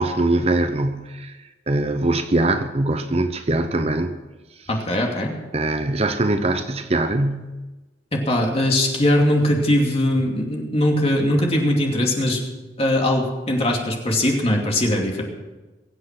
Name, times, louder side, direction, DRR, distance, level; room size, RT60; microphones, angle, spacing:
voice 1, 0.0-1.4 1.7-4.1 5.5-7.6, right 2 dB, 35° right, 9 dB, 0.8 m, -22 dB
voice 2, 4.7-5.3 8.1-12.4 12.8-15.2, left 1 dB, 35° left, 0 dB, 2.6 m, -20 dB
22.5 x 8.2 x 6.0 m, 1.2 s
head